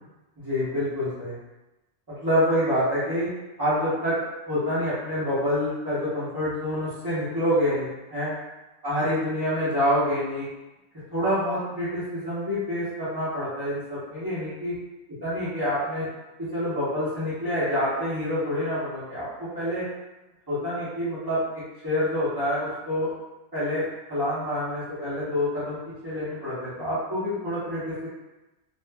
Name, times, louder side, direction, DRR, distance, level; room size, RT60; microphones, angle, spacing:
voice 1, 0.4-1.4 2.2-3.3 3.6-4.2 4.5-8.3 8.8-10.5 11.1-14.7 15.2-16.1 16.4-19.9 20.5-23.1 23.5-28.1, equal, 20° right, -14 dB, 0.8 m, -27 dB
2.5 x 2.4 x 2.2 m, 1.0 s
omnidirectional pair, 1.3 m